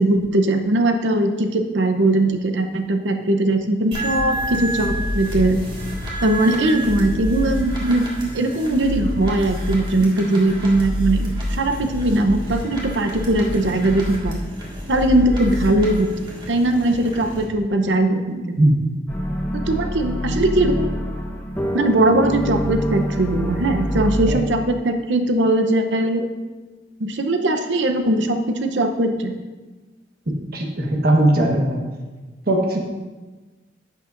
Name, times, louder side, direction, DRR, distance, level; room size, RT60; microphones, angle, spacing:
voice 1, 0.0-5.6 6.2-14.4 14.9-16.1 16.5-18.6 19.5-21.0 21.7-26.3 27.0-29.3, right 1 dB, 80° right, 6 dB, 0.8 m, -20 dB
sound 1, 3.9-17.4, equal, 30° right, 2.0 m, -28 dB
voice 2, 18.6-18.9 24.3-24.4 30.5-31.8 32.5-32.8, right 1 dB, 55° right, 0 dB, 1.4 m, -18 dB
sound 2, 19.1-24.3, equal, 10° left, 0.8 m, -26 dB
11.0 x 8.3 x 2.6 m, 1.3 s
head